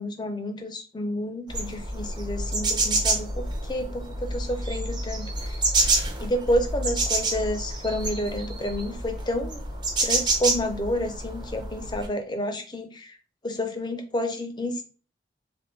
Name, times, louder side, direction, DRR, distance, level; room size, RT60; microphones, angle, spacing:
voice 1, 0.0-5.6 6.2-9.6 10.0-13.1 13.4-14.8, equal, 25° left, 6 dB, 0.5 m, -30 dB
sound 1, 1.5-12.1, right 2 dB, 25° right, 0.6 m, -28 dB
3.4 x 2.6 x 3.1 m, 0.38 s
head